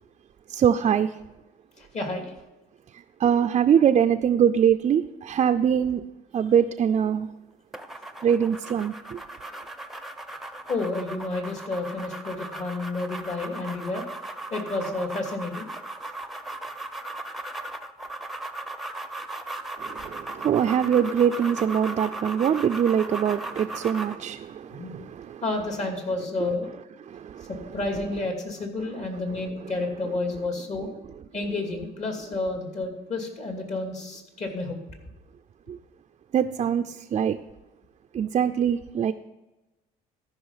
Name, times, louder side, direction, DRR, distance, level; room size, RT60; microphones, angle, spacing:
voice 1, 0.5-1.1 3.2-6.0 6.3-7.3 8.2-9.2 19.8-26.5 27.1-28.2 28.8-29.1 29.6-30.2 30.8-30.9 31.2-31.5 35.7-35.8 36.3-37.4 38.1-39.1, right 8 dB, 40° right, 8 dB, 0.5 m, -24 dB
voice 2, 1.8-2.3 10.7-14.0 14.5-15.7 24.7-25.1 25.4-26.7 27.5-30.9 31.3-34.8, left 2 dB, 45° left, 3 dB, 2.6 m, -30 dB
sound 1, 7.7-24.2, right 2 dB, ahead, 0.7 m, -37 dB
13.5 x 5.8 x 5.7 m, 1.0 s
cardioid pair, 110°, 17 cm